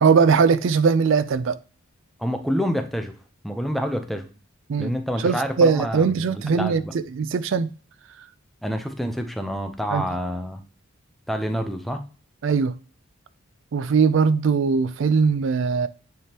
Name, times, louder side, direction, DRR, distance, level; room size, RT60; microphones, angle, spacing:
voice 1, 0.0-1.6 4.7-7.7 8.2-8.3 9.9-10.1 12.4-12.8 13.7-15.9, right 5 dB, 60° right, 0.3 m, -20 dB
voice 2, 2.2-3.1 3.4-4.3 4.8-6.9 8.6-10.6 11.3-12.0, equal, ahead, 0.6 m, -27 dB
9.2 x 3.6 x 2.9 m
head